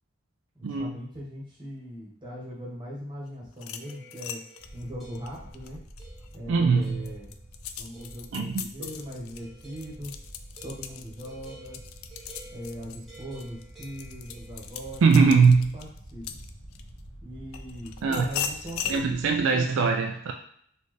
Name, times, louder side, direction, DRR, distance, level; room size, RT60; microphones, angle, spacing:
voice 1, 0.5-4.4 4.7-5.8 6.3-7.3 7.8-10.1 10.6-11.8 12.5-16.4 17.2-19.7, equal, 20° right, -6 dB, 1.2 m, -40 dB
sound 1, 3.5-6.4 6.8-17.0 17.5-19.0, left 8 dB, 85° left, 0.3 m, -38 dB
sound 2, 3.8-5.5 6.0-6.4 6.8-7.4 7.9-8.3 8.8-15.0, right 2 dB, ahead, 1.2 m, -52 dB
sound 3, 4.6-19.4, right 1 dB, 60° left, 1.4 m, -48 dB
voice 2, 6.5-7.0 8.3-8.6 15.0-15.7 18.0-18.2 18.9-20.3, right 5 dB, 70° right, 4 dB, 0.3 m, -21 dB
4.0 x 2.6 x 3.2 m, 0.63 s
head